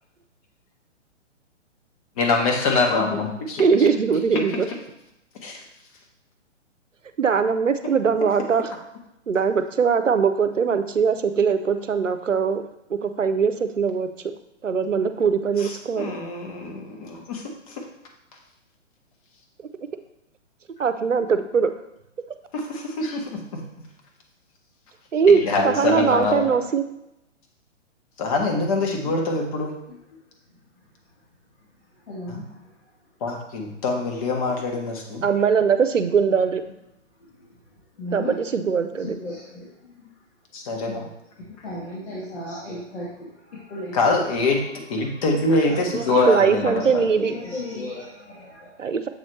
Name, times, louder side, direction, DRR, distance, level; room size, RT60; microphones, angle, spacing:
voice 1, 2.2-3.6 5.4-5.6 15.6-17.8 22.5-23.6 25.3-26.6 28.2-29.7 32.3-32.4 33.2-35.2 40.5-41.1 43.9-44.6 44.9-47.1, left 3 dB, 30° left, 2 dB, 1.1 m, -24 dB
voice 2, 3.6-4.7 7.2-8.7 9.3-12.6 12.9-14.1 14.6-16.1 20.8-21.7 25.1-26.8 35.2-36.6 38.1-39.2 45.9-47.3 48.8-49.1, right 6 dB, 80° right, 10 dB, 0.7 m, -21 dB
voice 3, 32.1-32.6 37.4-37.5 38.0-38.4 39.0-40.1 41.5-44.2 45.0-45.2 45.7-46.2 46.6-46.7 47.1-48.7, left 1 dB, 55° left, -7 dB, 1.8 m, -35 dB
7.4 x 4.1 x 3.1 m, 0.85 s
figure-of-eight pair, 125°, 37 cm